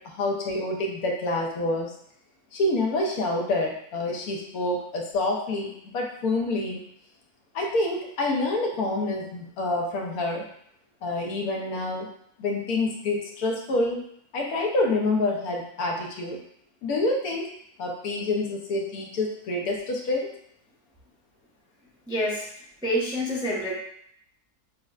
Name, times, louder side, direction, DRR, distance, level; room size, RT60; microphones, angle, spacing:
voice 1, 0.0-1.9 2.5-6.8 7.5-10.5 11.0-12.1 12.4-14.0 14.3-16.4 16.8-17.5 17.8-20.3, left 2 dB, 75° left, -1 dB, 1.2 m, -27 dB
voice 2, 22.1-22.5 22.8-23.7, equal, 5° right, -6 dB, 0.5 m, -27 dB
6.3 x 2.1 x 2.4 m, 0.69 s
omnidirectional pair, 1.6 m